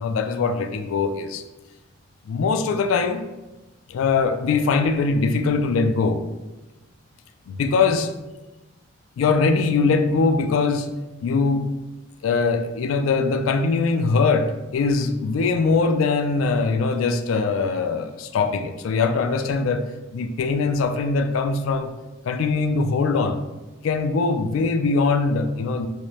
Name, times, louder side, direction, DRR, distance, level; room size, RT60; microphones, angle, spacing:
voice 1, 0.0-1.4 2.3-3.2 3.9-6.2 7.5-8.1 9.2-10.9 11.2-11.7 12.2-19.9 20.1-21.9 22.2-23.4 23.8-25.9, left 4 dB, 85° left, 8 dB, 0.3 m, -22 dB
4.8 x 2.0 x 2.7 m, 1.1 s
head